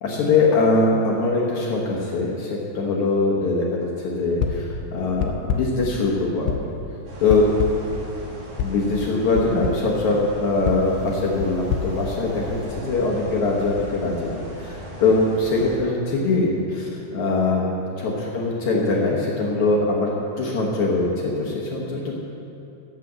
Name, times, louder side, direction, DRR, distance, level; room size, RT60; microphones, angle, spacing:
voice 1, 0.0-6.5 7.2-7.5 8.6-17.7 18.0-22.2, left 3 dB, 65° left, -3 dB, 1.9 m, -22 dB
sound 1, 4.4-4.8 5.2-5.9 6.5-6.8 7.3-8.0 8.6-8.9 9.4-9.9 10.7-12.7, left 7 dB, 85° left, 2.9 m, -28 dB
sound 2, 7.1-15.8, equal, 40° right, 3.1 m, -37 dB
12.5 x 7.4 x 8.0 m, 2.8 s
omnidirectional pair, 5.0 m